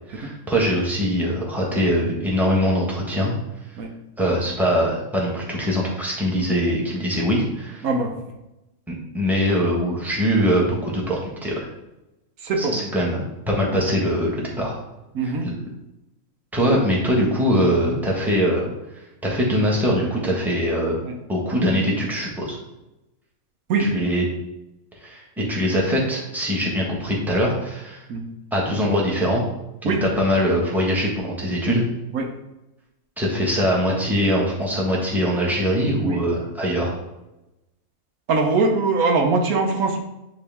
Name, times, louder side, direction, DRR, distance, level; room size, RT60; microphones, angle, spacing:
voice 1, 0.1-3.3 4.2-7.9 9.1-11.7 12.6-14.8 15.2-15.5 16.5-18.7 19.2-21.0 21.3-22.6 23.8-24.2 25.0-28.0 28.5-29.4 29.8-31.8 33.2-37.0, equal, ahead, -4 dB, 1.3 m, -22 dB
voice 2, 12.4-12.9 15.1-15.4 17.8-18.0 21.0-21.2 23.7-23.9 28.1-28.2 29.8-30.0 32.1-32.3 36.0-36.2 38.3-40.0, right 3 dB, 85° right, 3 dB, 1.4 m, -21 dB
9.5 x 3.2 x 3.5 m, 0.94 s
omnidirectional pair, 1.5 m